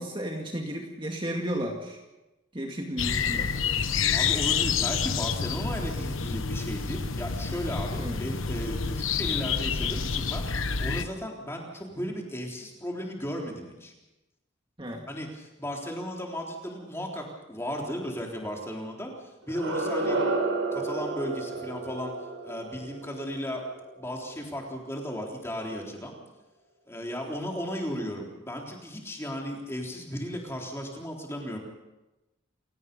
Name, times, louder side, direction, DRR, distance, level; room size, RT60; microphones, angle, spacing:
voice 1, 0.0-2.0 2.5-3.5 8.0-8.2 14.8-15.1, equal, 25° right, 1 dB, 2.2 m, -33 dB
sound 1, 3.0-11.0, left 6 dB, 75° left, 1.2 m, -28 dB
voice 2, 4.1-13.9 15.1-20.2 20.7-22.1 22.4-23.6 24.0-26.2 26.9-31.6, equal, 15° left, 0 dB, 3.7 m, -35 dB
sound 2, 19.4-24.4, right 2 dB, 70° right, 5.3 m, -31 dB
29.0 x 18.0 x 5.5 m, 1.0 s
head